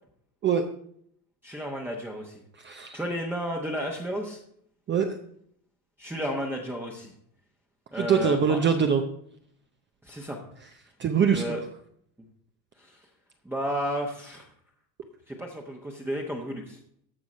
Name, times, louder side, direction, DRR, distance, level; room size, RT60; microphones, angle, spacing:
voice 1, 1.4-2.4 2.7-4.4 6.0-7.1 7.9-8.6 10.0-10.4 11.3-11.6 12.8-13.0 13.4-14.5 15.3-16.8, equal, 5° right, -2 dB, 1.0 m, -32 dB
voice 2, 2.6-3.0 4.9-5.2 8.0-9.0 11.0-11.6, right 6 dB, 25° right, 5 dB, 0.6 m, -23 dB
14.0 x 4.7 x 5.5 m, 0.66 s
cardioid pair, 135°, 48 cm